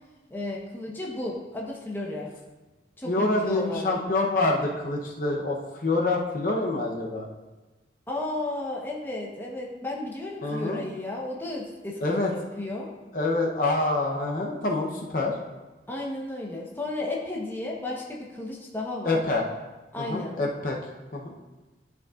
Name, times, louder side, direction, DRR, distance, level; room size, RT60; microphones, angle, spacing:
voice 1, 0.3-2.3 3.0-3.9 8.1-12.9 15.9-19.2 19.9-20.4, left 2 dB, 10° left, -3 dB, 0.9 m, -33 dB
voice 2, 3.1-7.3 10.4-10.8 12.0-12.3 13.1-15.3 19.0-19.4 20.0-20.8 21.1-21.3, left 2 dB, 50° left, -1 dB, 0.8 m, -26 dB
11.5 x 5.3 x 2.4 m, 1.2 s
head